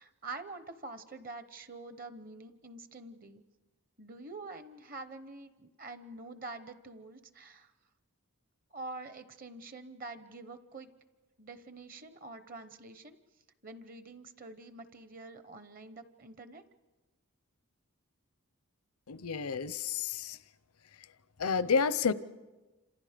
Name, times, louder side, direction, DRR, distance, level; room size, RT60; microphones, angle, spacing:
voice 1, 0.0-3.4 4.0-7.7 8.7-10.9 11.4-13.2 13.6-16.6, right 3 dB, 40° right, 11 dB, 1.0 m, -46 dB
voice 2, 19.1-20.4 21.4-22.1, left 5 dB, 90° left, 16 dB, 0.7 m, -30 dB
29.0 x 27.0 x 5.2 m, 1.2 s
head